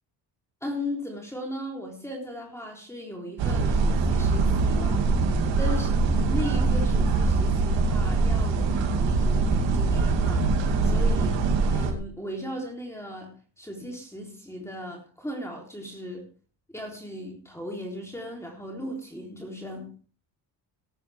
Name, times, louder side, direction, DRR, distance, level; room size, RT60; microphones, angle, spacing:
voice 1, 0.6-5.1 5.6-5.9 6.3-11.4 11.7-16.2 16.7-19.9, left 1 dB, 5° left, 0 dB, 3.6 m, -37 dB
sound 1, 3.4-11.9, right 3 dB, 75° right, 2.6 m, -23 dB
19.0 x 9.1 x 3.5 m, 0.41 s
cardioid pair, 85°, 44 cm